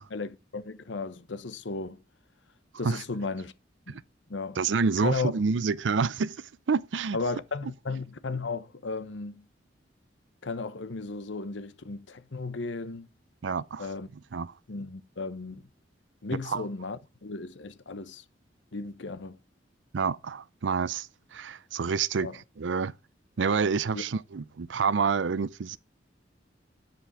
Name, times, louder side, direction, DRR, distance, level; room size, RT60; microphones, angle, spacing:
voice 1, 0.1-2.0 2.8-3.5 3.9-4.0 4.3-4.6 5.0-5.3 7.1-9.4 10.4-13.1 13.8-14.1 14.7-15.6 16.2-18.2 18.7-19.4 22.2-22.4 23.9-24.0, left 3 dB, 80° left, 0.9 m, -35 dB
voice 2, 4.6-6.4 6.7-7.2 13.4-13.9 14.3-14.5 16.5-16.6 19.9-22.9 23.4-25.8, right 5 dB, 85° right, 0.5 m, -28 dB
10.0 x 5.2 x 4.7 m
head